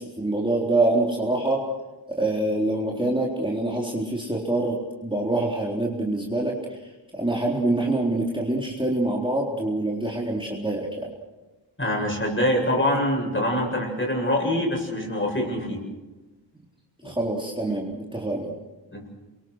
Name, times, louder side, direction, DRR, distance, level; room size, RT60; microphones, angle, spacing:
voice 1, 0.0-1.7 2.2-6.8 7.1-11.1 17.0-18.5, right 2 dB, 10° right, -2 dB, 3.8 m, -25 dB
voice 2, 11.8-15.8 17.0-17.1 18.9-19.0, left 1 dB, 25° left, 1 dB, 7.7 m, -24 dB
28.5 x 24.0 x 6.4 m, 1.1 s
wide cardioid pair, 75°, 45 cm